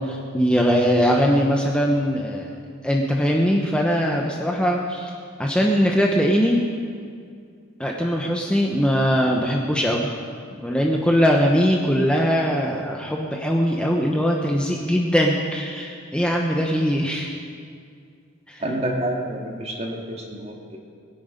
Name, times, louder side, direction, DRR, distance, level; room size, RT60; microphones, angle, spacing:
voice 1, 0.0-2.5 2.8-5.1 5.4-6.6 7.8-10.1 10.6-17.3 18.5-18.6, equal, 5° left, -1 dB, 0.9 m, -21 dB
voice 2, 18.6-20.0 20.4-20.8, right 1 dB, 30° right, 0 dB, 2.0 m, -28 dB
21.5 x 10.0 x 5.2 m, 2.3 s
head